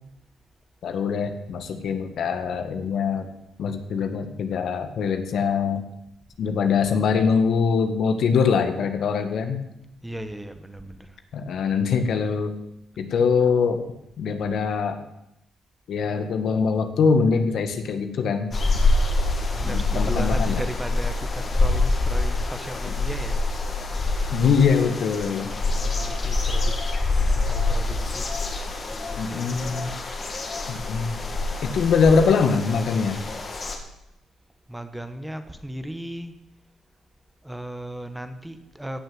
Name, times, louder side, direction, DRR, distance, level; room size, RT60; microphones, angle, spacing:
voice 1, 0.8-3.3 3.6-5.8 6.4-9.6 11.3-12.5 13.0-13.8 14.2-15.0 15.9-18.5 19.6-20.6 24.3-25.5 29.2-29.9 30.7-31.2 31.6-33.2, left 5 dB, 65° left, 7 dB, 1.6 m, -23 dB
voice 2, 10.0-11.1 19.5-23.4 25.7-26.8 27.1-28.6 28.9-29.9 34.7-36.4 37.4-39.0, right 1 dB, 5° right, 9 dB, 1.4 m, -36 dB
sound 1, 18.5-33.8, left 2 dB, 35° left, 2.6 m, -25 dB
16.5 x 6.6 x 7.9 m, 0.85 s
cardioid pair, 90°, 0 cm